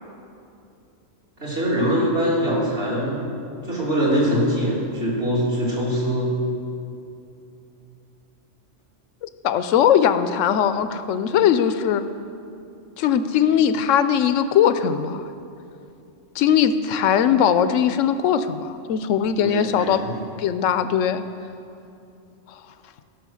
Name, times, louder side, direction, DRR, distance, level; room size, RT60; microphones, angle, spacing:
voice 1, 1.4-3.3 3.6-6.3 19.4-20.2, equal, 50° right, -7 dB, 3.2 m, -23 dB
voice 2, 9.2-12.0 13.0-15.2 16.4-20.0 20.4-21.2, left 8 dB, 80° left, 11 dB, 1.0 m, -20 dB
14.5 x 6.1 x 6.3 m, 2.6 s
omnidirectional pair, 1.3 m